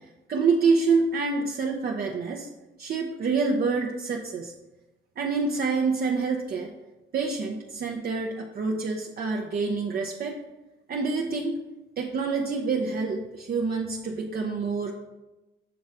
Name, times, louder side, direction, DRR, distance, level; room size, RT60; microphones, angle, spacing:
voice 1, 0.3-2.5 2.8-4.5 5.2-6.7 7.1-10.4 10.9-11.6 12.0-14.9, right 4 dB, 50° right, 1 dB, 0.6 m, -27 dB
7.0 x 3.1 x 4.7 m, 1.0 s
cardioid pair, 90°, 20 cm